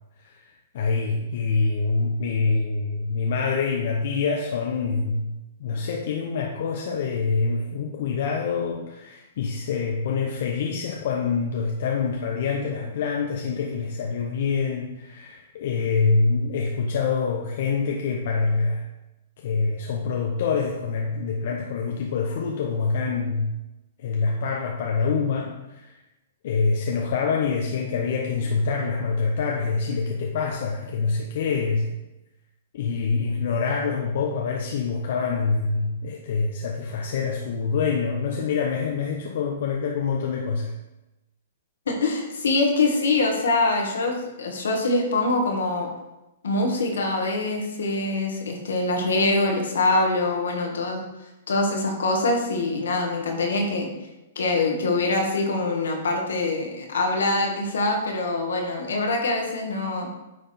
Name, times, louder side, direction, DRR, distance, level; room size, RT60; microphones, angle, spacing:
voice 1, 0.7-5.3 5.6-18.9 19.4-23.5 24.0-26.0 26.4-31.9 32.7-40.8, left 4 dB, 60° left, 0 dB, 0.8 m, -25 dB
voice 2, 41.9-45.9 46.4-51.0 51.5-53.9 54.3-60.1, left 2 dB, 80° left, 1 dB, 1.6 m, -24 dB
9.2 x 3.4 x 4.3 m, 0.99 s
hypercardioid pair, 125°, 0 cm